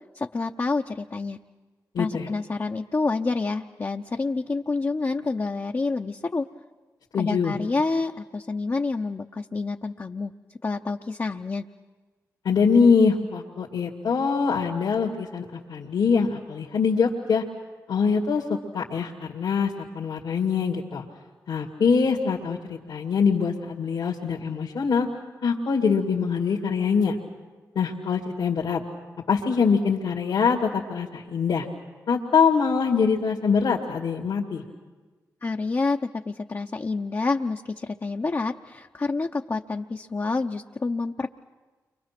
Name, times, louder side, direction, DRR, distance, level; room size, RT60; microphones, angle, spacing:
voice 1, 0.1-1.4 2.0-6.5 7.2-11.7 35.4-36.0 36.3-41.3, left 3 dB, 35° left, 2 dB, 0.8 m, -28 dB
voice 2, 1.9-2.3 7.1-7.5 12.4-17.4 17.9-21.0 21.5-25.1 25.4-27.1 27.8-28.8 29.3-31.7 32.1-34.6, left 5 dB, 80° left, -2 dB, 2.2 m, -23 dB
29.5 x 24.5 x 6.0 m, 1.3 s
supercardioid pair, 50°, 7 cm